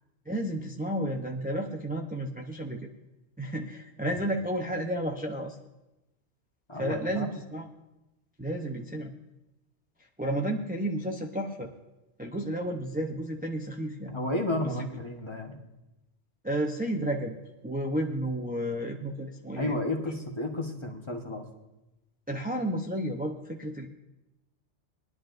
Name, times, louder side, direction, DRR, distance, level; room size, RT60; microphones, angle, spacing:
voice 1, 0.3-2.9 3.4-5.6 6.8-7.7 8.4-9.1 10.2-11.7 12.2-14.1 16.4-17.3 17.6-19.8 22.3-23.9, right 1 dB, 10° right, 1 dB, 0.6 m, -32 dB
voice 2, 6.7-7.3 14.1-15.6 19.6-21.5, left 1 dB, 25° left, 2 dB, 1.2 m, -32 dB
21.0 x 11.0 x 2.6 m, 0.97 s
omnidirectional pair, 1.2 m